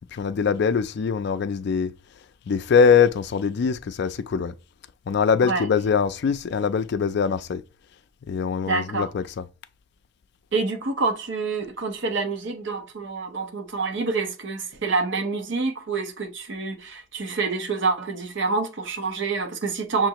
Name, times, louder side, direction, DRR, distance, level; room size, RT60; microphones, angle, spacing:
voice 1, 0.1-1.9 2.5-4.5 5.1-7.6 8.2-9.5, left 6 dB, 55° left, 0.3 m, -22 dB
voice 2, 8.7-9.1 10.5-20.1, right 4 dB, 60° right, 0.7 m, -27 dB
6.4 x 2.5 x 2.9 m
head